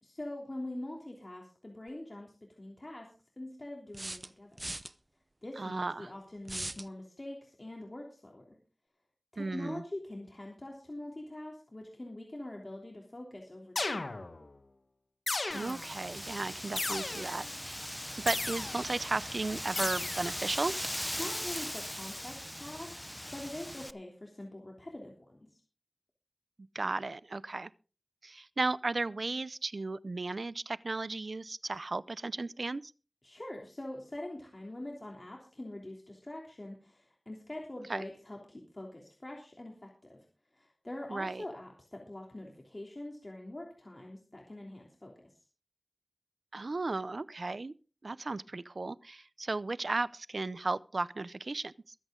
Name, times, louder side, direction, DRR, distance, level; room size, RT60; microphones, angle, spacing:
voice 1, 0.0-3.1 3.4-4.7 5.4-8.6 9.3-14.0 21.2-25.6 33.2-40.2 40.5-45.3, left 1 dB, 45° left, 3.2 m, -44 dB
sound 1, 1.9-2.0 3.9-4.9 6.4-6.9, right 1 dB, 40° right, 0.8 m, -39 dB
voice 2, 5.6-6.1 9.4-9.8 15.5-17.8 18.2-20.8 26.7-27.7 28.2-32.9 37.9-38.1 41.1-41.4 46.5-47.7 48.0-51.9, right 3 dB, 80° right, 0.6 m, -35 dB
sound 2, 13.8-14.5 15.3-16.0 16.8-17.5 18.3-19.0 19.8-20.5, left 3 dB, 85° left, 1.4 m, -35 dB
Wind, 15.5-23.9, equal, 10° left, 0.7 m, -39 dB
22.5 x 8.3 x 3.8 m
wide cardioid pair, 40°, 0 cm